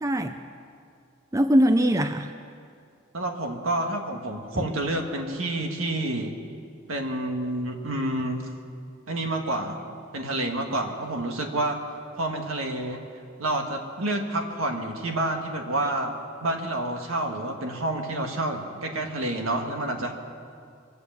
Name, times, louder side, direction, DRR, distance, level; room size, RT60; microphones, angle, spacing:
voice 1, 0.0-0.4 1.3-2.3 4.6-4.7, equal, 15° right, 8 dB, 0.4 m, -21 dB
voice 2, 3.1-6.4 6.9-8.5 9.1-9.8 10.1-11.8 12.1-13.0 13.4-16.1 16.4-20.1, right 1 dB, 75° right, 3 dB, 1.7 m, -29 dB
23.5 x 8.1 x 7.3 m, 2.4 s
head